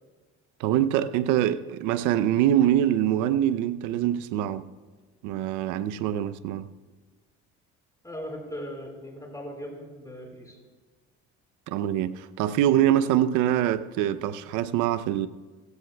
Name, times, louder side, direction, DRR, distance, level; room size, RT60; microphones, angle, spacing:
voice 1, 0.6-4.7 5.2-6.7 11.7-15.3, right 11 dB, 75° right, 0.7 m, -24 dB
voice 2, 8.0-10.6, equal, 10° left, 4.5 m, -38 dB
17.0 x 16.5 x 2.3 m
supercardioid pair, 80°, 30 cm